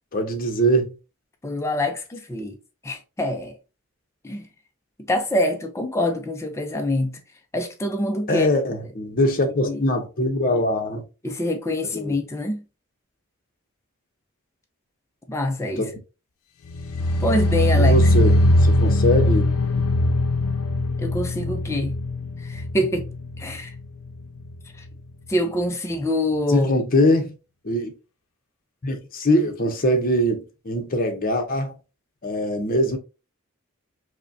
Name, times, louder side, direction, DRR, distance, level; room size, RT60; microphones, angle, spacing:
voice 1, 0.1-0.9 8.3-11.0 11.9-12.1 15.8-15.9 17.8-19.5 26.5-27.3 27.6-27.9 28.8-31.7 32.2-33.0, equal, 40° left, 0.7 m, -22 dB
voice 2, 1.4-2.6 2.8-3.5 4.2-4.4 5.1-7.2 7.5-8.5 9.7-9.9 11.2-12.6 15.3-15.9 17.2-18.1 21.0-22.0 22.4-23.1 23.4-23.7 25.3-26.7, left 1 dB, 15° left, 0.4 m, -25 dB
sound 1, 16.7-23.8 24.1-24.5 24.9-25.0, left 1 dB, 90° left, 0.5 m, -20 dB
5.0 x 2.1 x 2.6 m
head